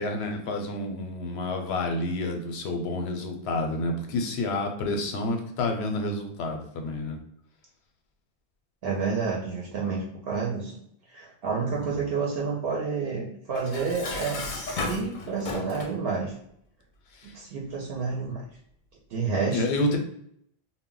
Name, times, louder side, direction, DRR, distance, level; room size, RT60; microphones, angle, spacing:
voice 1, 0.0-7.2 11.8-12.0 17.2-17.3 19.5-20.0, left 2 dB, 90° left, 4 dB, 0.8 m, -29 dB
voice 2, 8.8-10.8 11.1-16.3 17.2-18.4 19.1-19.6, right 5 dB, 75° right, -3 dB, 0.8 m, -29 dB
Dishes pots and pans, 13.6-16.0, left 3 dB, 60° left, 0.6 m, -34 dB
2.1 x 2.1 x 3.6 m, 0.71 s
omnidirectional pair, 1.1 m